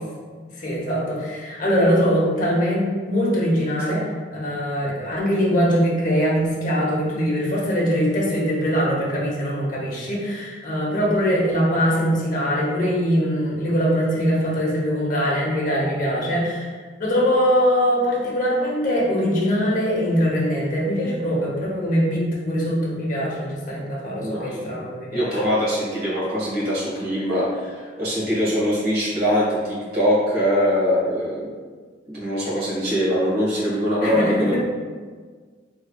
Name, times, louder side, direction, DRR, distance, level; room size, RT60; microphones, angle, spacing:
voice 1, 0.5-16.7 17.0-25.3 34.0-34.6, equal, 45° left, -5 dB, 0.8 m, -22 dB
voice 2, 24.2-24.8 25.1-31.5 32.1-34.6, equal, 55° right, -7 dB, 1.4 m, -22 dB
3.5 x 3.2 x 2.2 m, 1.6 s
head